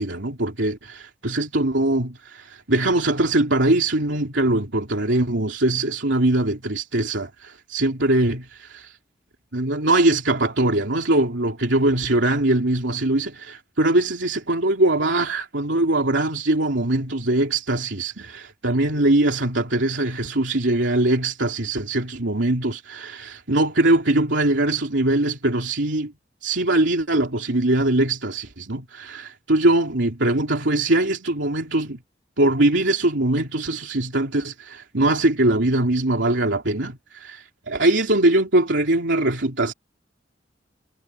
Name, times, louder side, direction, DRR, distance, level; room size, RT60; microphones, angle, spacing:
voice 1, 0.0-9.0 9.5-26.1 26.4-32.0 32.4-39.7, right 2 dB, 85° right, 2.9 m, -22 dB
head